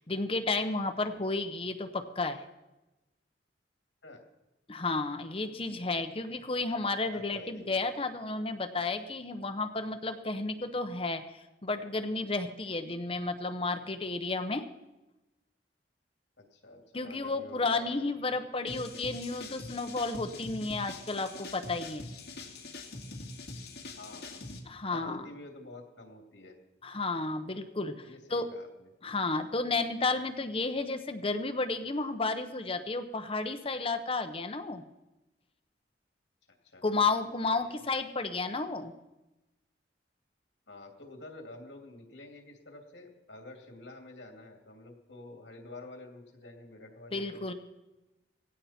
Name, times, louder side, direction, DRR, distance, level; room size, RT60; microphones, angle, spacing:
voice 1, 0.0-2.4 4.7-11.2 11.6-14.7 16.9-22.0 24.7-25.2 26.8-28.5 29.0-34.8 36.8-38.9 47.1-47.5, left 3 dB, 30° left, 7 dB, 0.9 m, -32 dB
voice 2, 7.1-7.8 16.4-18.4 24.0-24.5 24.9-26.6 28.0-28.9 36.6-37.8 40.7-47.4, left 2 dB, 80° left, 2 dB, 2.6 m, -49 dB
sound 1, 18.7-24.6, left 2 dB, 60° left, 2.2 m, -43 dB
17.5 x 16.0 x 4.4 m, 1.0 s
head